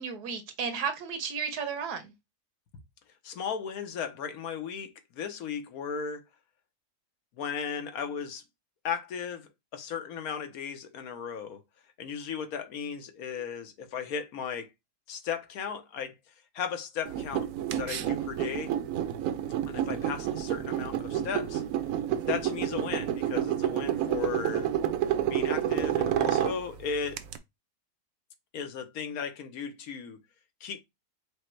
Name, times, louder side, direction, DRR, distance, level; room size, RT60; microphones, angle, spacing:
voice 1, 0.0-2.1, right 6 dB, 85° right, 1.5 m, -33 dB
voice 2, 3.2-6.2 7.4-8.4 8.8-11.6 12.0-14.7 15.1-16.1 16.5-17.5 17.7-18.7 19.7-21.6 22.3-24.7 25.3-27.2 28.5-30.2 30.6-30.8, left 7 dB, 70° left, 1.2 m, -36 dB
sound 1, 17.1-27.4, right 10 dB, 70° right, 0.9 m, -29 dB
5.0 x 2.1 x 4.4 m
omnidirectional pair, 1.6 m